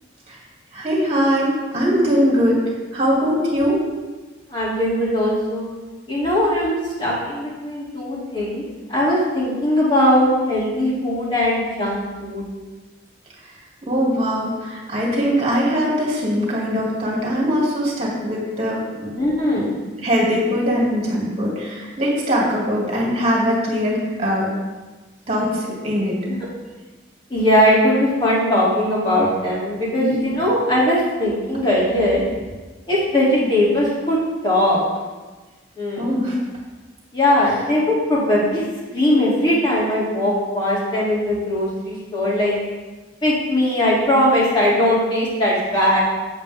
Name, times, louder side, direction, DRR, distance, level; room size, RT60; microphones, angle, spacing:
voice 1, 0.7-2.6 2.9-3.8 13.8-19.1 19.6-19.7 20.0-24.5 25.3-26.2 30.0-30.2 36.0-36.4, equal, 35° right, -3 dB, 2.4 m, -21 dB
voice 2, 4.5-5.7 6.1-8.6 8.9-12.4 19.2-19.8 27.3-32.2 32.9-34.2 34.4-34.8 35.8-36.1 37.1-38.6 38.9-42.5 43.2-46.0, left 1 dB, 25° left, -8 dB, 2.8 m, -19 dB
8.3 x 8.3 x 3.6 m, 1.3 s
head